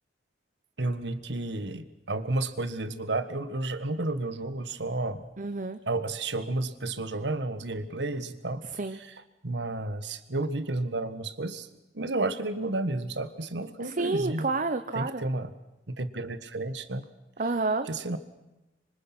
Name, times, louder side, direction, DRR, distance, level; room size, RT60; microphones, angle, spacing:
voice 1, 0.8-5.3 5.9-8.6 8.9-9.1 9.4-11.7 11.9-14.5 14.9-15.5 15.9-17.0 17.8-18.2, right 2 dB, 80° right, 11 dB, 1.6 m, -31 dB
voice 2, 5.4-5.8 8.7-9.0 13.8-15.2 17.4-17.9, right 3 dB, 45° right, 9 dB, 0.9 m, -29 dB
25.5 x 25.0 x 6.1 m, 0.99 s
head